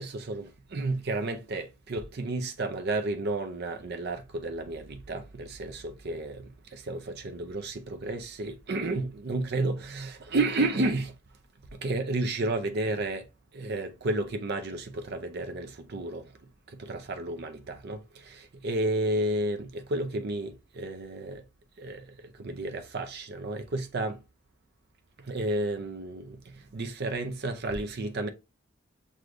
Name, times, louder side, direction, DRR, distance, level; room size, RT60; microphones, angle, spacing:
voice 1, 0.0-11.1 11.7-13.3 13.5-16.3 16.7-21.4 21.8-22.1 22.3-24.2 25.2-28.3, right 2 dB, 55° right, 0.5 m, -32 dB
6.3 x 2.4 x 2.5 m
head